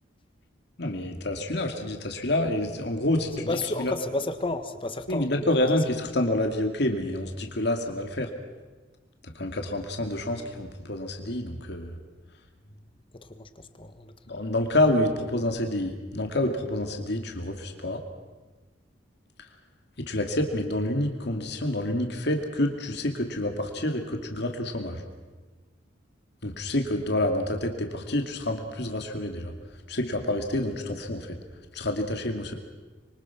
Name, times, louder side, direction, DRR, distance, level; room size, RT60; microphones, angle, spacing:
voice 1, 0.8-3.9 5.1-8.3 9.2-12.0 14.3-18.0 20.0-25.0 26.4-29.5 29.9-31.4 31.7-32.5, left 1 dB, 65° left, 4 dB, 2.5 m, -28 dB
voice 2, 3.5-5.3 13.3-13.5 13.8-14.4, left 2 dB, 30° left, 9 dB, 1.6 m, -31 dB
26.0 x 24.0 x 6.0 m, 1.3 s
head